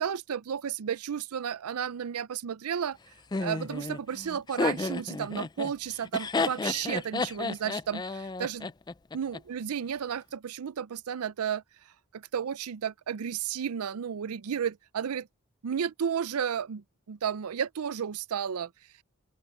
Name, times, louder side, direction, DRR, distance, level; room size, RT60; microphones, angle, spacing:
voice 1, 0.0-3.0 3.4-8.7 9.1-11.6 12.1-15.3 15.6-18.7, right 8 dB, 85° right, 0.5 m, -33 dB
Laughter, 3.3-9.4, left 3 dB, 20° left, 0.3 m, -32 dB
open air
head